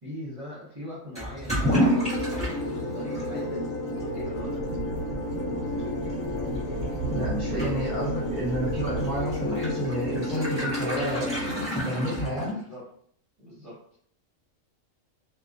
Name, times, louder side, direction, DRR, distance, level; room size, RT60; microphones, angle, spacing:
voice 1, 0.0-2.2 2.6-3.6 4.1-4.8 12.5-12.8 13.4-13.8, equal, 30° right, -9 dB, 0.6 m, -41 dB
Toilet flush / Liquid, 1.1-12.8, equal, 5° left, 1.0 m, -32 dB
sound 1, 1.6-11.7, left 1 dB, 80° left, 1.1 m, -32 dB
sound 2, 3.9-10.1, right 3 dB, 65° right, 0.7 m, -37 dB
voice 2, 7.1-11.3 11.7-12.6, equal, 40° left, -7 dB, 0.9 m, -30 dB
2.4 x 2.2 x 2.4 m, 0.63 s
omnidirectional pair, 1.4 m